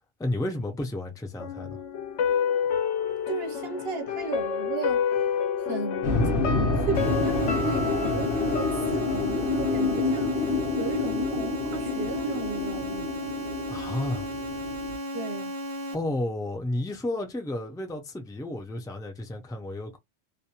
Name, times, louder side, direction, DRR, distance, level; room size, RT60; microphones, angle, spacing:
voice 1, 0.2-1.8 13.7-14.3 15.9-20.0, left 1 dB, 5° left, 0.4 m, -32 dB
sound 1, 1.4-10.4 10.7-10.8, left 7 dB, 85° left, 1.0 m, -30 dB
voice 2, 3.3-5.0 5.6-6.1 6.4-13.1 15.1-15.5, right 4 dB, 65° right, 1.1 m, -34 dB
sound 2, 6.0-15.0, left 3 dB, 55° left, 0.9 m, -28 dB
sound 3, 6.9-15.9, equal, 40° right, 0.7 m, -34 dB
2.6 x 2.2 x 2.8 m
omnidirectional pair, 1.2 m